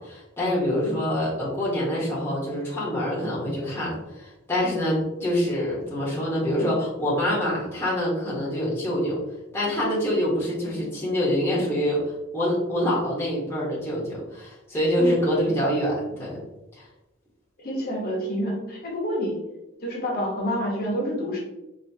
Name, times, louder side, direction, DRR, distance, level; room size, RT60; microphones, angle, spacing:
voice 1, 0.0-9.2 9.5-16.4 16.7-16.8, equal, 10° left, -6 dB, 1.0 m, -25 dB
voice 2, 17.6-19.4 19.8-21.4, equal, 50° left, -3 dB, 1.0 m, -28 dB
4.2 x 2.7 x 2.7 m, 0.97 s
head